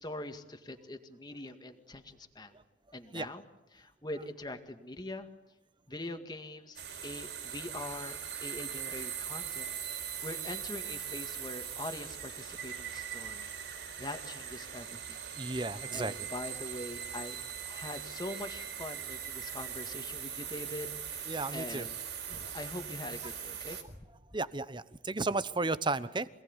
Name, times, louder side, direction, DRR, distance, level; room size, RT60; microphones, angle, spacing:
voice 1, 0.0-2.5 2.9-3.5 3.7-5.3 5.9-9.7 10.0-13.5 14.0-15.2 15.9-17.4 17.6-22.0 22.3-23.8, left 1 dB, 25° left, 6 dB, 2.0 m, -43 dB
sound 1, 6.8-23.8, right 8 dB, 75° right, 4.3 m, -41 dB
voice 2, 15.3-16.1 21.3-21.9 24.3-26.3, right 3 dB, 25° right, 15 dB, 1.0 m, -33 dB
27.0 x 18.5 x 9.8 m, 1.0 s
head